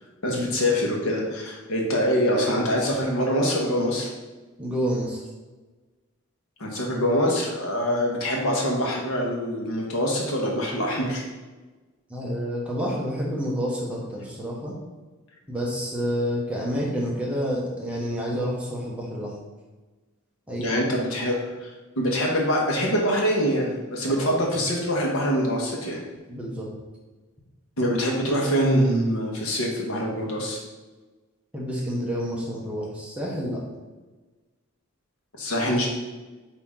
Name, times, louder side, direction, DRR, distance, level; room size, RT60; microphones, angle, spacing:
voice 1, 0.2-4.1 6.6-11.2 20.6-21.7 22.0-26.0 27.8-30.6 35.4-35.9, equal, 80° left, -1 dB, 1.4 m, -24 dB
voice 2, 4.6-5.2 7.9-8.0 12.1-14.7 15.5-19.3 20.5-20.8 24.1-24.3 26.3-26.7 31.5-33.6, equal, 5° right, -4 dB, 1.0 m, -29 dB
8.5 x 3.0 x 3.7 m, 1.2 s
head